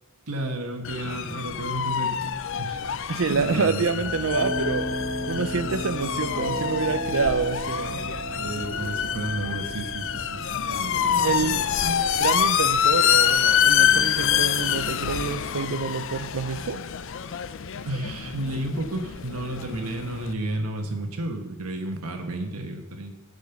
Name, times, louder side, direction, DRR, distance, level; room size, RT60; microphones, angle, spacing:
voice 1, 0.3-2.3 2.6-2.8 3.3-3.8 8.4-12.3 17.8-23.1, right 1 dB, 80° right, 3 dB, 1.2 m, -32 dB
sound 1, 0.8-20.3, left 9 dB, 60° left, 0.5 m, -26 dB
voice 2, 3.1-4.9 5.3-8.0 11.2-11.6 12.2-16.8, right 5 dB, 65° right, 14 dB, 0.5 m, -27 dB
sound 2, 4.0-20.5, equal, 20° right, 2.9 m, -36 dB
10.0 x 5.2 x 7.0 m, 1.2 s
head